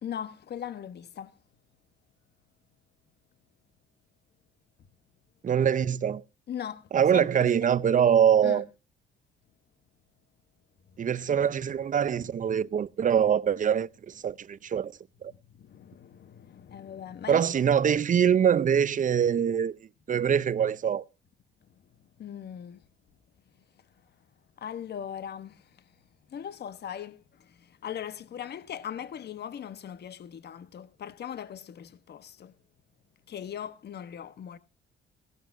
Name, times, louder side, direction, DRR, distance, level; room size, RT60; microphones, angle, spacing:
voice 1, 0.0-1.4 6.5-7.5 8.4-8.7 15.3-17.5 22.2-22.8 24.6-25.8 26.3-32.5 33.3-34.6, left 9 dB, 55° left, 1.2 m, -39 dB
voice 2, 5.4-6.2 6.9-8.7 11.0-14.9 15.2-15.3 17.3-19.8 20.1-21.0, right 8 dB, 40° right, 0.6 m, -24 dB
16.5 x 12.0 x 2.7 m
cardioid pair, 90°, 20 cm